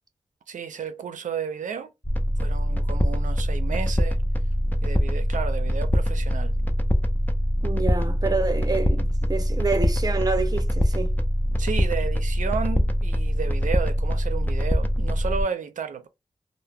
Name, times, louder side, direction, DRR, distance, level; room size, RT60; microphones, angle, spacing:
voice 1, 0.5-1.9 2.4-4.2 4.8-6.5 11.6-16.1, right 6 dB, 85° right, 0.4 m, -32 dB
sound 1, 2.0-15.4, equal, 15° left, 0.4 m, -23 dB
voice 2, 7.6-11.1, right 3 dB, 30° right, 0.7 m, -27 dB
2.1 x 2.0 x 3.3 m
cardioid pair, 65°, 13 cm